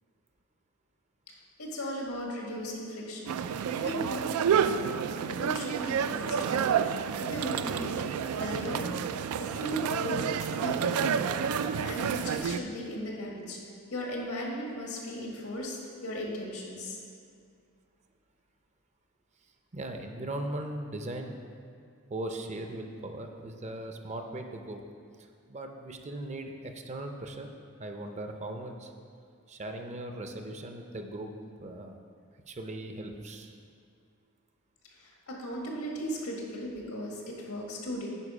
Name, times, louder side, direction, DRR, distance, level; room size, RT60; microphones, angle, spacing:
voice 1, 1.3-6.8 7.2-8.0 8.3-9.1 9.4-11.5 11.8-13.6 13.9-17.0 34.9-38.1, equal, 85° left, -1 dB, 1.7 m, -37 dB
sound 1, 3.3-12.6, right 7 dB, 80° right, 0.3 m, -29 dB
voice 2, 19.7-21.4 22.1-24.8 25.5-27.5 27.8-28.9 29.5-31.3 31.6-32.0 32.5-33.5, right 1 dB, 30° right, 5 dB, 0.6 m, -38 dB
9.8 x 4.9 x 4.9 m, 2.3 s
head